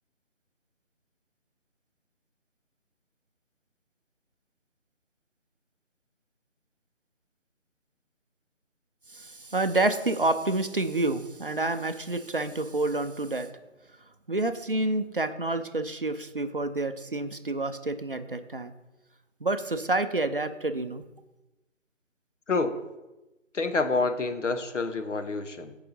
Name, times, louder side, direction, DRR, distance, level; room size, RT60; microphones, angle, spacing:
voice 1, 9.1-13.5 14.3-18.7 19.4-21.0, right 2 dB, 45° right, 9 dB, 0.5 m, -28 dB
voice 2, 22.5-22.8 23.5-25.8, left 3 dB, 70° left, 8 dB, 0.9 m, -28 dB
6.5 x 4.8 x 5.4 m, 1.0 s
figure-of-eight pair, 160°, 38 cm